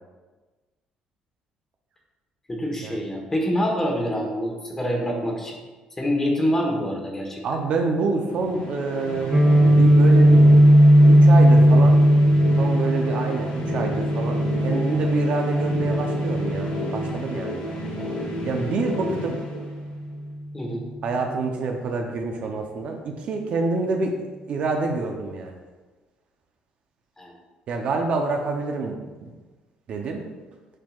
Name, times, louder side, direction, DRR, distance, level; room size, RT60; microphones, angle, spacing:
voice 1, 2.5-5.6 6.0-7.4 20.5-20.9 27.2-27.3, equal, 15° left, 0 dB, 1.2 m, -26 dB
voice 2, 7.4-9.4 9.8-10.6 11.0-12.0 12.6-17.6 18.5-19.4 21.0-24.1 24.5-25.6 27.7-29.3 29.9-30.3, right 3 dB, 55° right, 3 dB, 0.7 m, -27 dB
sound 1, 8.2-20.2, left 1 dB, 55° left, 1.4 m, -31 dB
Guitar, 9.3-17.2, equal, 20° right, 0.7 m, -17 dB
8.9 x 4.4 x 2.4 m, 1.3 s
cardioid pair, 120°, 3 cm